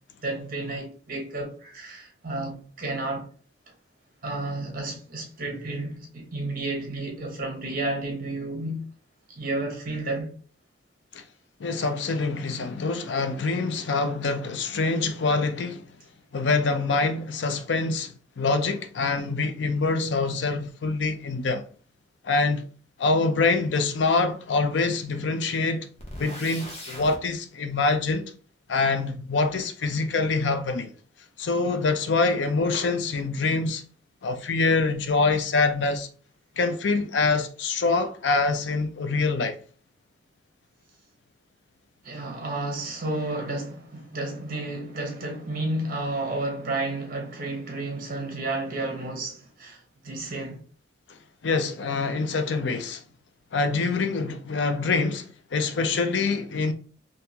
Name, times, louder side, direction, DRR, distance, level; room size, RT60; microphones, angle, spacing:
voice 1, 0.2-3.2 4.2-8.8 9.4-10.3 42.0-49.8 50.0-50.6, right 2 dB, 50° right, 1.0 m, -31 dB
voice 2, 11.6-15.8 16.3-18.1 18.4-21.6 22.2-22.7 23.0-25.9 26.2-28.3 28.7-30.9 31.4-33.8 34.2-36.1 36.6-39.6 51.4-53.0 53.5-55.2 55.5-56.7, left 3 dB, 75° left, 0.5 m, -25 dB
sound 1, 26.0-27.2, left 1 dB, 35° left, 1.0 m, -39 dB
3.7 x 2.6 x 2.8 m
head